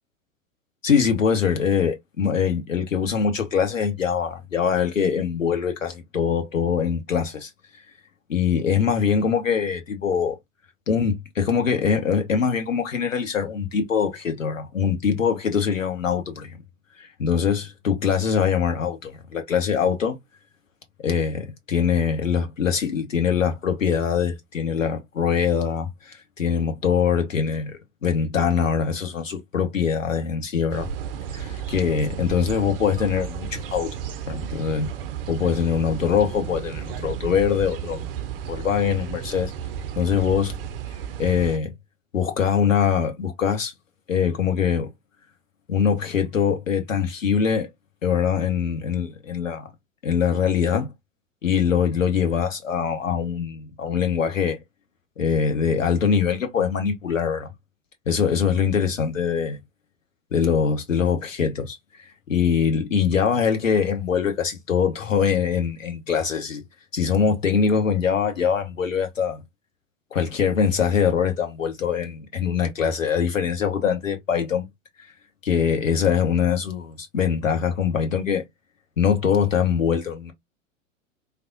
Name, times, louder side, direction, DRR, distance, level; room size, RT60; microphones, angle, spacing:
voice 1, 0.8-7.5 8.3-10.4 10.9-16.5 17.2-20.2 21.0-30.9 31.3-33.9 34.3-34.9 35.3-38.1 38.5-39.5 40.0-40.5 41.2-41.7 42.1-43.7 44.1-44.9 45.7-47.7 48.0-49.7 50.0-50.9 51.4-54.6 55.2-57.5 58.1-59.6 60.3-61.8 62.3-66.6 66.9-69.4 70.1-74.7 75.4-78.4 79.0-80.3, left 7 dB, 75° left, 0.9 m, -23 dB
sound 1, 30.7-41.6, right 8 dB, 45° right, 0.5 m, -33 dB
3.4 x 2.3 x 2.4 m
figure-of-eight pair, 95°, 39 cm